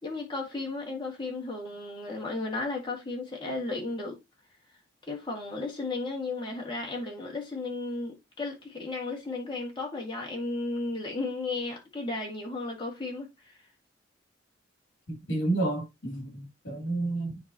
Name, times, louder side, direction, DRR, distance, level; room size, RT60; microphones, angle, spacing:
voice 1, 0.0-4.2 5.1-13.3, left 3 dB, 25° left, 2.0 m, -34 dB
voice 2, 15.1-17.4, right 2 dB, 60° left, 3.1 m, -30 dB
9.3 x 4.1 x 2.9 m
head